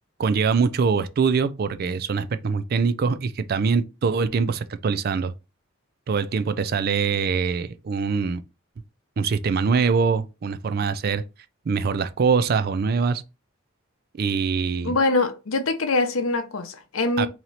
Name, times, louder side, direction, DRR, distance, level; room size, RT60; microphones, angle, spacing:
voice 1, 0.2-5.3 6.1-8.4 9.2-11.2 11.7-13.2 14.2-15.0 17.2-17.3, right 5 dB, 50° right, 0.4 m, -23 dB
voice 2, 14.8-17.3, left 3 dB, 85° left, 0.7 m, -23 dB
3.1 x 2.8 x 3.9 m
head